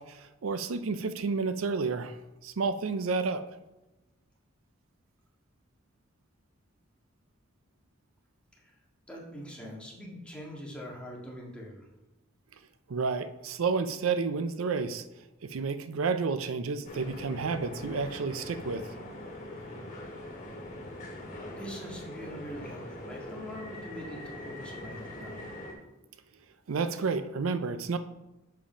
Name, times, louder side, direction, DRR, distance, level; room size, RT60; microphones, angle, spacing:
voice 1, 0.0-2.2 2.4-3.4 12.9-15.0 15.4-18.9 26.7-28.0, right 4 dB, 80° right, 11 dB, 0.5 m, -30 dB
voice 2, 9.1-11.9 21.5-25.4, equal, 5° left, -4 dB, 1.9 m, -43 dB
sound 1, 16.8-25.7, left 1 dB, 40° left, 2.2 m, -42 dB
7.6 x 5.2 x 5.0 m, 1.0 s
head